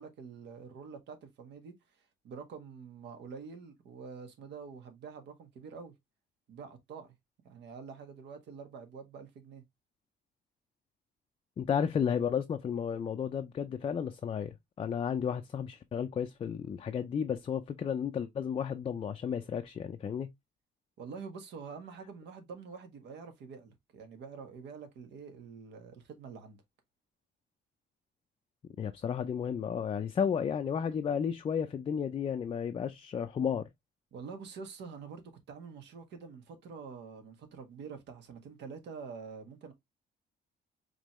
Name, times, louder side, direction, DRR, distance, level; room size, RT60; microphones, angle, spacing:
voice 1, 0.0-1.7 2.2-5.9 6.5-7.1 7.4-9.6 21.0-26.6 34.1-39.7, right 5 dB, 75° right, 1.6 m, -46 dB
voice 2, 11.6-20.3 28.8-33.6, left 7 dB, 30° left, 0.4 m, -33 dB
5.2 x 3.2 x 3.1 m
cardioid pair, 145°, 18 cm